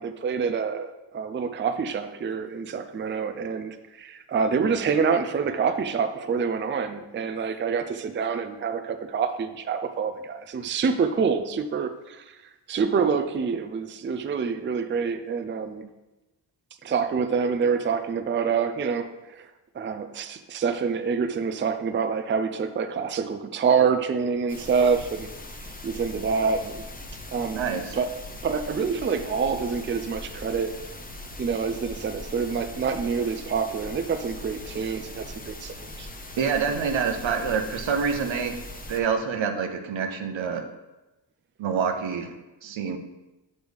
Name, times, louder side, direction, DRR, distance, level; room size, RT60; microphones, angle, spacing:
voice 1, 0.0-12.4 12.7-15.9 16.8-19.5 19.7-25.3 25.8-26.8 27.3-27.6 27.9-28.1 28.4-30.8 31.4-36.1, right 5 dB, 25° right, 8 dB, 0.4 m, -26 dB
sound 1, 24.5-39.0, left 1 dB, 20° left, 0.7 m, -40 dB
voice 2, 27.5-28.0 36.4-38.5 38.9-40.6 41.6-42.3 42.6-43.0, right 6 dB, 80° right, 6 dB, 0.8 m, -26 dB
6.3 x 5.2 x 3.4 m, 1.1 s
cardioid pair, 75°, 45 cm